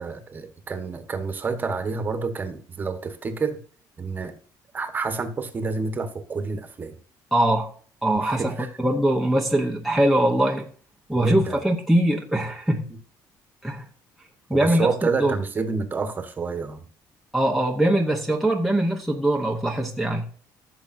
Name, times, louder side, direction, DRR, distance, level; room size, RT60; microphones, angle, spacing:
voice 1, 0.0-3.6 4.0-4.3 4.7-6.9 8.3-8.7 11.1-11.6 14.5-16.9, right 4 dB, 25° right, 1.2 m, -28 dB
voice 2, 7.3-7.7 8.0-10.7 11.1-12.9 13.6-13.8 14.5-14.9 15.2-15.3 17.3-20.4, right 1 dB, ahead, 0.9 m, -22 dB
15.0 x 6.8 x 2.6 m
cardioid pair, 155°, 8 cm